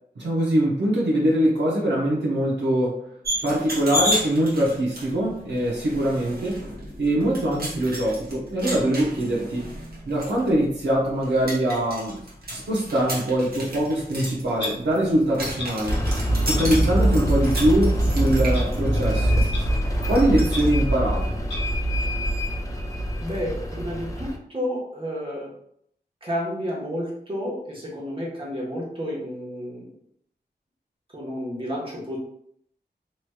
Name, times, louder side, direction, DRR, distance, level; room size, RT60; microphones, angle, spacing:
voice 1, 0.2-3.0 3.4-6.7 7.0-9.7 10.1-12.2 12.5-16.0 16.4-19.5 20.1-21.4, right 1 dB, 85° right, -4 dB, 0.9 m, -23 dB
sound 1, 3.2-20.7, equal, 60° right, 1.1 m, -33 dB
Clock, 14.6-14.7 15.6-15.7 16.6-16.7 17.5-17.6 18.5-18.6 19.5-19.6 20.5-20.6 21.5-21.6, left 2 dB, 85° left, 0.9 m, -32 dB
sound 2, 15.9-24.4, right 1 dB, 20° left, 0.5 m, -24 dB
voice 2, 23.2-25.5 26.2-29.9 31.1-32.2, equal, 30° right, -5 dB, 1.1 m, -31 dB
3.1 x 2.9 x 2.3 m, 0.68 s
wide cardioid pair, 85°, 18 cm